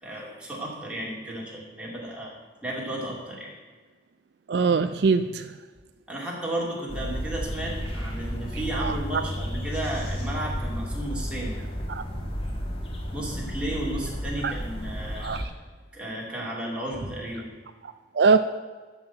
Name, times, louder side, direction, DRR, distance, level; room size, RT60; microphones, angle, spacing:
voice 1, 0.0-2.3 2.6-3.5 6.1-11.5 13.1-15.4 15.9-17.5, right 1 dB, 5° right, -4 dB, 2.3 m, -33 dB
voice 2, 4.5-5.5 8.8-9.0 11.9-12.0 14.4-14.5 15.2-15.4 18.1-18.4, right 4 dB, 65° right, 10 dB, 0.4 m, -22 dB
sound 1, 6.9-15.4, equal, 30° left, 1.5 m, -32 dB
12.5 x 4.3 x 7.8 m, 1.4 s
head